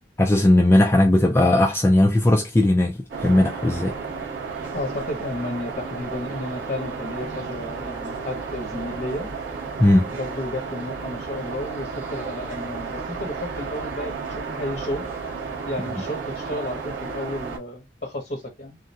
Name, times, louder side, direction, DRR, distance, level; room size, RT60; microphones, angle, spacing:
voice 1, 0.2-3.9 9.8-10.1, left 1 dB, 15° left, 0.3 m, -18 dB
sound 1, 3.1-17.6, right 5 dB, 80° right, 1.4 m, -33 dB
voice 2, 4.7-9.3 10.1-15.1 15.6-18.8, left 1 dB, 45° left, 0.8 m, -32 dB
3.6 x 2.1 x 2.6 m
head